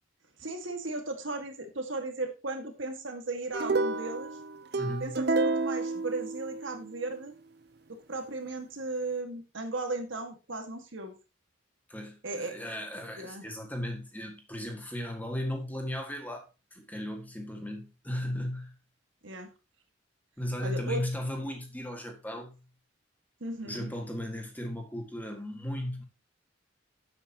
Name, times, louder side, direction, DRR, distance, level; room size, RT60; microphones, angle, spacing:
voice 1, 0.4-4.3 5.0-7.3 7.9-11.1 12.2-12.6 13.2-13.4 19.2-19.5 20.6-21.0 23.4-23.9, right 2 dB, 70° right, 1.9 m, -36 dB
sound 1, 3.5-6.9, right 3 dB, 50° right, 0.6 m, -30 dB
voice 2, 4.8-5.2 11.9-18.7 20.4-22.6 23.6-26.0, left 1 dB, 10° left, 1.8 m, -36 dB
11.5 x 8.0 x 3.0 m
head